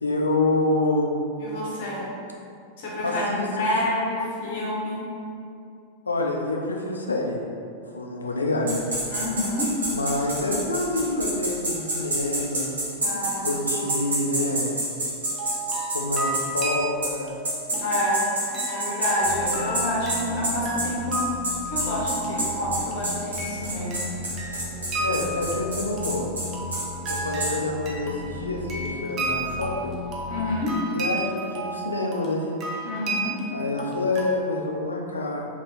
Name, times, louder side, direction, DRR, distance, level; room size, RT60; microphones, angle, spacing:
voice 1, 0.0-1.2 3.0-3.7 6.1-7.4 7.9-8.9 9.9-12.7 13.4-14.7 15.9-17.3 25.0-26.3 27.1-29.9 30.9-32.5 33.5-35.5, left 2 dB, 75° left, 0 dB, 0.4 m, -27 dB
voice 2, 1.4-2.1 2.8-3.3 3.6-5.0 9.1-9.7 13.0-14.0 17.7-21.3 21.6-24.0 30.3-30.7 32.8-33.4, left 1 dB, 55° left, -5 dB, 0.7 m, -28 dB
sound 1, 8.7-16.7 17.0-17.1 17.4-27.5, right 1 dB, 70° right, 0.8 m, -28 dB
sound 2, 15.2-34.2, right 2 dB, 30° right, 0.5 m, -33 dB
sound 3, 19.2-30.7, left 2 dB, 5° left, 1.1 m, -37 dB
3.3 x 2.5 x 2.9 m, 2.5 s
figure-of-eight pair, 90°, 0 cm